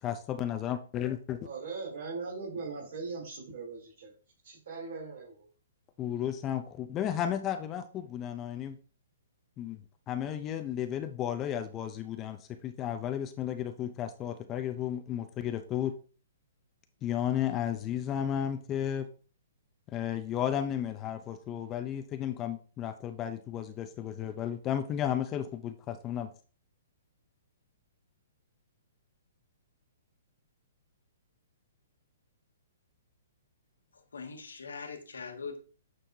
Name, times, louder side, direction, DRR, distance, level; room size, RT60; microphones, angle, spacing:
voice 1, 0.0-1.4 6.0-8.8 9.6-9.8 10.1-15.9 17.0-19.1 19.9-26.3, left 10 dB, 25° left, 8 dB, 0.5 m, -33 dB
voice 2, 1.4-4.1 4.4-5.5, right 4 dB, 65° right, -4 dB, 3.1 m, -40 dB
voice 3, 33.9-35.6, left 5 dB, 90° left, 4 dB, 1.5 m, -42 dB
8.9 x 4.4 x 2.7 m, 0.39 s
hypercardioid pair, 140°, 0 cm